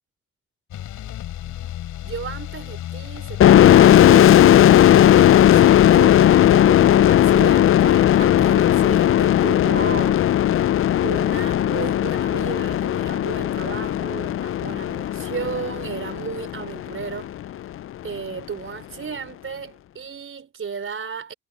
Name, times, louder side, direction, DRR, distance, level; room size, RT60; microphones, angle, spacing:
sound 1, 0.7-12.8 13.1-13.7 14.0-14.6 14.9-15.2 15.5-15.6 15.8-15.9, left 12 dB, 75° left, 6.1 m, -38 dB
voice 1, 2.0-10.2 11.0-17.3 18.0-21.3, right 6 dB, 45° right, 4.5 m, -34 dB
sound 2, 3.4-16.8, left 11 dB, 45° left, 0.4 m, -16 dB
cardioid pair, 90°, 30 cm